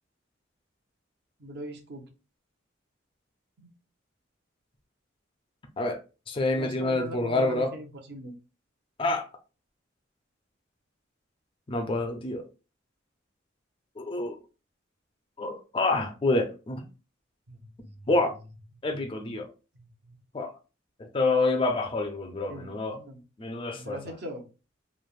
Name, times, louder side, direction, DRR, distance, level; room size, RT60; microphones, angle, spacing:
voice 1, 1.4-2.1 3.6-3.7 6.6-8.4 17.5-18.0 18.8-18.9 19.1-19.4 19.7-20.2 22.5-23.2 23.7-24.4, right 1 dB, 60° right, 0.6 m, -41 dB
voice 2, 6.3-7.7 9.0-9.3 11.7-12.4 14.0-14.4 15.4-16.8 18.1-18.3 18.8-19.5 20.3-20.5 21.1-23.0 23.4-24.0, left 2 dB, 25° left, 0.4 m, -27 dB
3.1 x 2.0 x 2.4 m
head